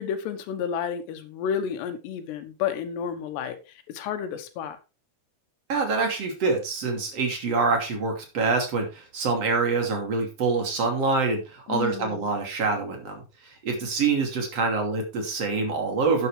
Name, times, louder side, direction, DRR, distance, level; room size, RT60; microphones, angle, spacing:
voice 1, 0.0-3.6 3.9-4.8 11.7-12.3, left 8 dB, 85° left, 3.3 m, -31 dB
voice 2, 5.7-16.3, right 4 dB, 40° right, 3.3 m, -26 dB
12.0 x 9.4 x 3.3 m
omnidirectional pair, 4.8 m